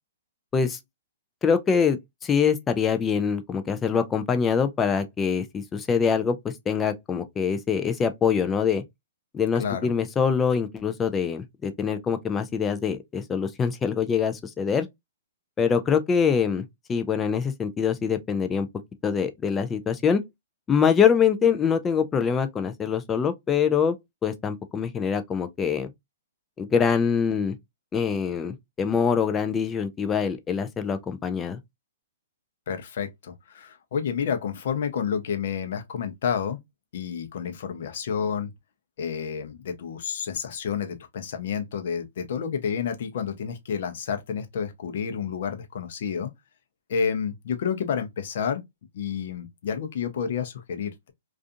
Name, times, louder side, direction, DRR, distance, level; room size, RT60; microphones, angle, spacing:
voice 1, 1.4-8.8 9.3-14.9 15.6-18.7 19.0-20.2 20.7-24.0 24.2-25.9 26.6-27.6 27.9-31.6, left 6 dB, 15° left, 0.3 m, -24 dB
voice 2, 9.5-9.9 32.7-36.6 36.9-38.5 39.0-46.3 46.9-48.6 48.9-51.1, left 7 dB, 60° left, 0.6 m, -30 dB
2.4 x 2.4 x 2.5 m
hypercardioid pair, 150°, 0 cm